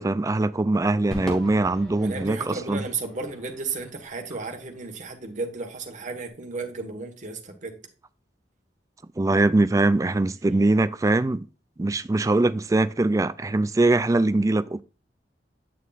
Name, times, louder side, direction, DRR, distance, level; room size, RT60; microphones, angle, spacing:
voice 1, 0.0-2.8 9.2-11.5 11.8-14.8, right 2 dB, 20° right, 0.3 m, -22 dB
Crowd / Fireworks, 1.1-5.6, equal, 5° left, 2.3 m, -40 dB
voice 2, 2.0-7.8, right 3 dB, 45° right, 1.5 m, -34 dB
9.2 x 6.5 x 2.5 m
head